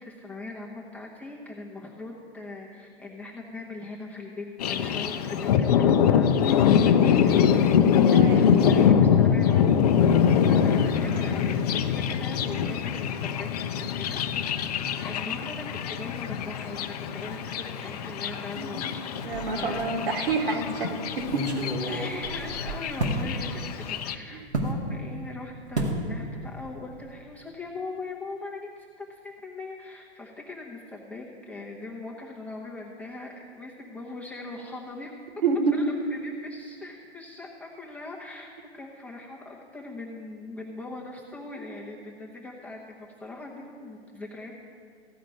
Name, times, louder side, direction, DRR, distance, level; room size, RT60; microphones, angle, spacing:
voice 1, 0.0-7.8 8.2-14.6 15.0-19.9 21.9-35.1 35.7-44.6, left 2 dB, 5° left, -3 dB, 0.8 m, -41 dB
Thunder, 4.6-24.2, left 8 dB, 35° left, 0.6 m, -24 dB
voice 2, 8.1-8.5 10.3-10.5 18.6-18.8 19.2-21.5 24.3-24.4 35.4-35.8, right 4 dB, 55° right, 2 dB, 1.8 m, -28 dB
sound 1, 19.3-19.9 20.3-20.4 21.2-23.2 24.5-24.8 25.7-26.0 26.3-26.7 26.9-27.1, right 1 dB, 80° right, 1.9 m, -30 dB
15.0 x 5.0 x 9.1 m, 2.2 s
figure-of-eight pair, 115°, 33 cm